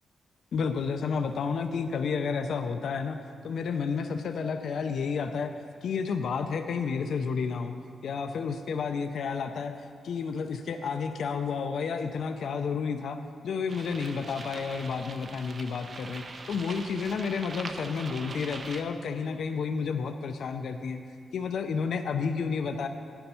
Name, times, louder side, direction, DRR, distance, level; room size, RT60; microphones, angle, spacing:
voice 1, 0.5-3.2 3.4-5.5 5.8-7.7 8.0-13.2 13.4-21.0 21.3-22.9, left 5 dB, 65° left, 7 dB, 0.4 m, -31 dB
sound 1, 13.7-18.8, right 3 dB, 35° right, 0.5 m, -42 dB
10.5 x 6.8 x 5.6 m, 2.2 s
wide cardioid pair, 175°, 0 cm